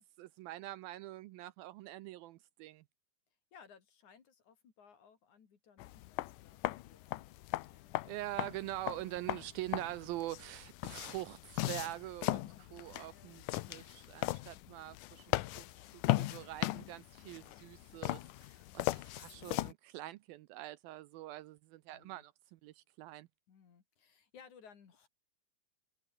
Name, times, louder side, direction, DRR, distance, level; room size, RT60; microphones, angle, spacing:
voice 1, 0.0-2.8 8.0-15.6 16.1-23.3, right 16 dB, 80° right, 2.3 m, -44 dB
voice 2, 3.5-7.4 7.7-8.0 8.8-9.1 12.5-12.8 13.1-13.4 16.9-17.3 18.5-18.8 21.9-22.2 23.5-25.1, left 6 dB, 50° left, 3.9 m, -62 dB
sound 1, 5.8-19.7, left 18 dB, 90° left, 1.8 m, -38 dB
omnidirectional pair, 4.6 m